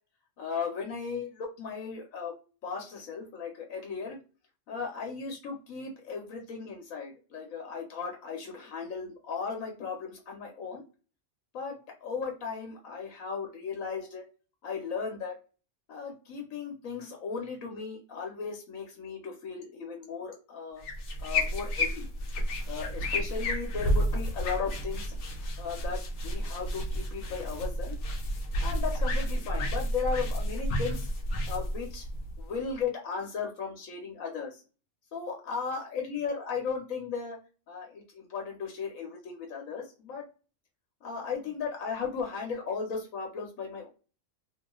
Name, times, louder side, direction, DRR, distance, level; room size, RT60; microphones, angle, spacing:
voice 1, 0.4-2.3 2.6-4.2 4.7-10.8 11.5-14.2 14.6-15.3 15.9-20.8 21.2-22.1 22.7-25.2 25.6-28.0 28.6-31.1 31.5-32.1 32.4-34.6 35.1-37.4 37.7-40.3 41.0-43.9, left 5 dB, 85° left, 1 dB, 1.2 m, -36 dB
sound 1, 20.8-32.7, equal, 65° left, 1.0 m, -31 dB
3.0 x 2.3 x 2.9 m, 0.34 s
omnidirectional pair, 1.4 m